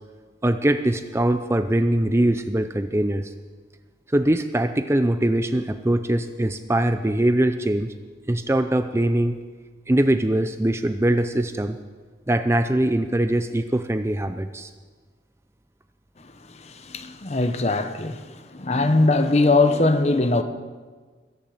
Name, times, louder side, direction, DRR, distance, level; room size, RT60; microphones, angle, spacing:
voice 1, 0.4-3.3 4.1-7.9 8.3-9.4 9.9-11.8 12.3-14.7, right 1 dB, 15° right, 0.5 m, -22 dB
voice 2, 16.2-20.4, left 2 dB, 35° left, 0.8 m, -21 dB
21.5 x 7.1 x 7.8 m
head